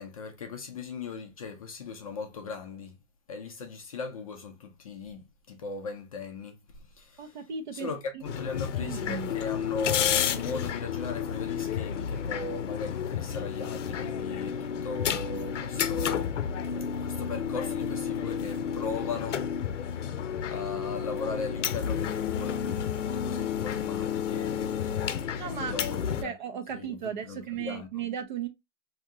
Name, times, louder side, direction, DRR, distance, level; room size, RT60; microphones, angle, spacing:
voice 1, 0.0-2.9 3.3-6.6 6.9-7.4 7.7-16.3 17.0-20.2 20.5-26.3 26.7-27.9, left 4 dB, 30° left, 0.4 m, -38 dB
voice 2, 7.2-7.9 8.1-8.2 8.7-9.3 25.4-25.8 26.2-28.5, right 7 dB, 40° right, 0.5 m, -35 dB
sound 1, 8.2-26.2, left 8 dB, 65° left, 0.6 m, -31 dB
3.5 x 2.7 x 2.4 m
hypercardioid pair, 155°, 38 cm